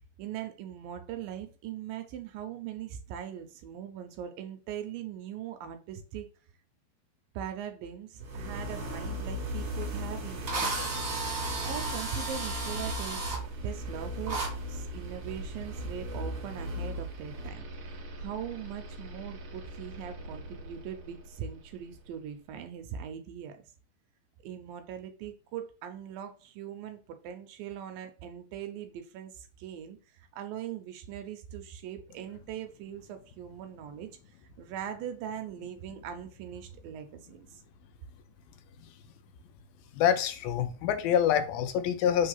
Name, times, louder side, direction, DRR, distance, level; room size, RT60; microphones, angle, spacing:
voice 1, 0.2-6.3 7.4-11.0 11.6-14.4 14.7-17.7 18.0-23.7 24.4-34.1 34.6-37.6, right 9 dB, 75° right, 2.3 m, -40 dB
sound 1, 8.2-22.1, equal, 50° right, 1.8 m, -38 dB
Drill, 9.8-9.9 10.5-13.4 14.3-14.5, right 3 dB, 30° right, 2.4 m, -34 dB
voice 2, 39.9-42.3, left 9 dB, 85° left, 2.4 m, -26 dB
5.3 x 3.9 x 5.4 m
omnidirectional pair, 4.4 m